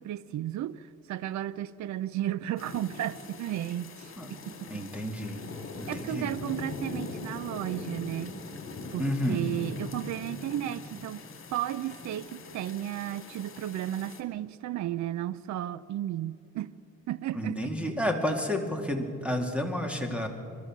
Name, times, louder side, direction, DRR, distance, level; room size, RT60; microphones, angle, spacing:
voice 1, 0.0-4.8 5.9-8.4 8.9-11.2 11.5-16.7 17.1-17.9, right 12 dB, 70° right, 17 dB, 0.6 m, -34 dB
sound 1, 2.6-14.2, left 3 dB, 45° left, 2.9 m, -42 dB
voice 2, 4.7-5.4 5.8-6.3 9.0-9.4 17.3-20.3, equal, 5° right, 4 dB, 2.4 m, -30 dB
28.0 x 12.5 x 7.4 m, 2.6 s
cardioid pair, 90°, 30 cm